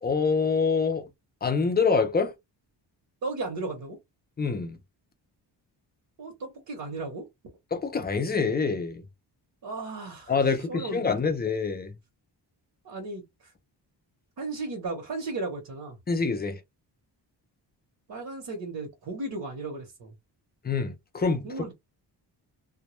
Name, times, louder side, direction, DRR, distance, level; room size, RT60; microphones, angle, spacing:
voice 1, 0.0-1.1 1.4-2.3 4.4-4.8 7.7-9.0 10.3-11.9 16.1-16.6 20.6-21.5, left 5 dB, 25° left, 0.3 m, -26 dB
voice 2, 3.2-4.0 6.2-7.3 9.6-10.3 10.7-11.2 12.8-13.5 14.4-16.0 18.1-20.1 21.4-21.7, right 3 dB, 55° right, 0.8 m, -35 dB
2.1 x 2.0 x 2.9 m
wide cardioid pair, 160°, 43 cm